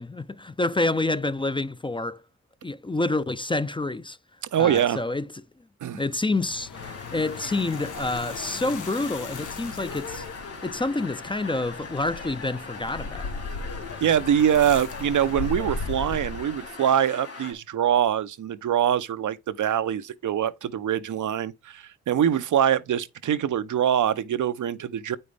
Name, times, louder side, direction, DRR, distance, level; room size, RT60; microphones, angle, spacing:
voice 1, 0.0-2.2 2.6-4.2 4.6-5.3 5.9-10.2 10.6-13.3, left 2 dB, 15° left, 0.5 m, -28 dB
voice 2, 4.5-5.0 5.8-6.0 14.0-25.2, right 9 dB, 75° right, 0.6 m, -24 dB
sound 1, 6.3-16.7, left 4 dB, 80° left, 1.0 m, -37 dB
sound 2, 6.7-17.5, left 4 dB, 50° left, 2.6 m, -41 dB
8.4 x 5.4 x 3.3 m
cardioid pair, 50°, 31 cm